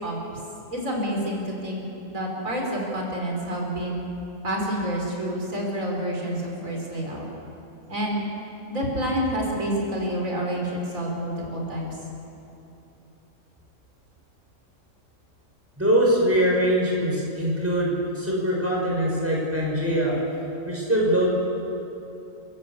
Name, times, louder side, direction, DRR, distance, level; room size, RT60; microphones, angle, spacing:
voice 1, 0.7-1.8 2.1-4.0 4.4-7.3 7.9-8.2 8.7-11.9, equal, 90° right, -1 dB, 5.1 m, -28 dB
voice 2, 15.8-20.2 20.6-21.3, right 1 dB, 10° right, -3 dB, 5.7 m, -22 dB
29.0 x 16.5 x 8.5 m, 2.9 s
omnidirectional pair, 1.4 m